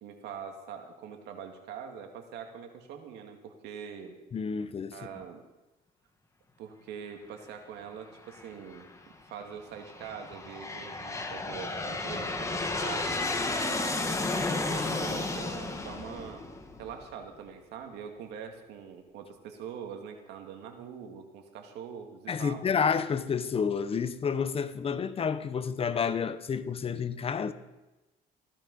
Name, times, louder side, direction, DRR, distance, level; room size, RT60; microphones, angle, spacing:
voice 1, 0.0-4.2 4.9-5.4 6.6-8.9 9.3-14.1 14.5-16.4 16.8-22.6, right 7 dB, 85° right, 2.2 m, -43 dB
voice 2, 4.3-4.9 22.3-27.5, left 6 dB, 35° left, 1.0 m, -30 dB
Aircraft, 8.3-8.8 9.6-17.1, left 3 dB, 15° left, 1.8 m, -33 dB
15.5 x 13.0 x 5.5 m
cardioid pair, 110°, 17 cm